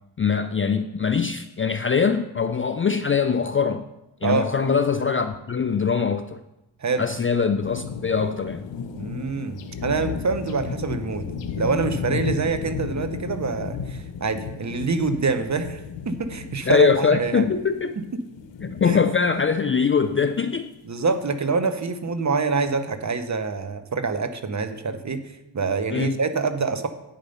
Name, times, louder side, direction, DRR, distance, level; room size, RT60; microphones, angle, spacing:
voice 1, 0.2-3.8 4.2-6.4 7.0-8.6 16.7-17.9 18.6-20.7 25.9-26.2, left 6 dB, 30° left, 9 dB, 0.4 m, -22 dB
sound 1, 7.6-20.2, left 6 dB, 70° left, 0.8 m, -34 dB
voice 2, 8.9-11.3 11.6-17.5 18.0-18.2 18.8-19.0 20.8-25.2 25.5-26.9, right 4 dB, 40° right, 10 dB, 0.8 m, -26 dB
9.0 x 5.2 x 5.4 m, 0.92 s
cardioid pair, 70°, 46 cm